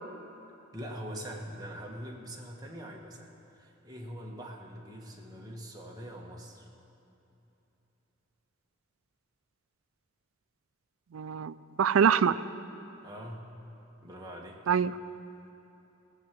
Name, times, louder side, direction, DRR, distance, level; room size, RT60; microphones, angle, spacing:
voice 1, 0.7-6.7 13.0-13.5 14.0-14.6, equal, 20° right, -2 dB, 1.5 m, -43 dB
voice 2, 11.1-12.4 14.7-14.9, right 7 dB, 80° right, 15 dB, 0.4 m, -25 dB
18.0 x 7.2 x 7.6 m, 3.0 s
head